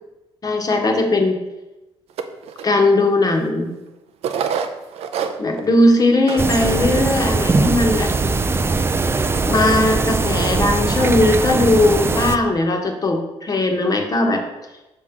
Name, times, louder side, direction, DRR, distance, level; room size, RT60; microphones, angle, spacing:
voice 1, 0.4-1.3 2.6-3.7 5.4-8.1 9.4-14.4, left 2 dB, 35° left, 3 dB, 1.1 m, -18 dB
sound 1, 2.2-2.6 3.4-3.5 4.2-5.7 6.0-6.1 6.3-6.5 7.0-7.1 7.7-8.1, right 7 dB, 90° right, 0.5 m, -25 dB
sound 2, 6.4-12.4, right 3 dB, 25° right, 0.4 m, -20 dB
6.0 x 3.7 x 5.8 m, 0.99 s
cardioid pair, 95°, 10 cm